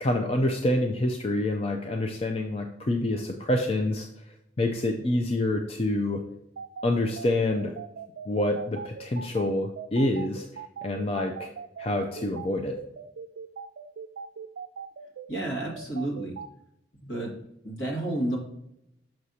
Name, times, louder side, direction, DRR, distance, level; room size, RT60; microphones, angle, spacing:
voice 1, 0.0-4.1 4.6-6.2 6.8-7.7 8.3-10.5 10.8-11.5 11.8-12.8, left 1 dB, 30° left, 3 dB, 0.4 m, -27 dB
sound 1, 6.6-16.5, right 6 dB, 75° right, 0.4 m, -40 dB
voice 2, 15.3-16.3 17.0-17.3 17.6-18.4, right 1 dB, 70° left, -3 dB, 2.0 m, -30 dB
6.2 x 6.0 x 2.8 m, 0.80 s
head